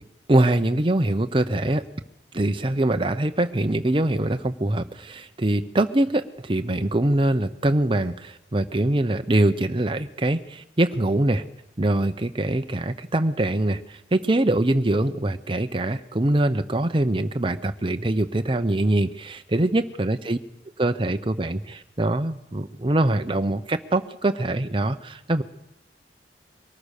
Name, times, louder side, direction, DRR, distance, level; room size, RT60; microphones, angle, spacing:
voice 1, 0.3-1.9 2.3-11.5 11.8-20.4 20.8-25.4, right 1 dB, 30° right, 8 dB, 0.8 m, -23 dB
23.0 x 18.5 x 6.6 m, 0.83 s
head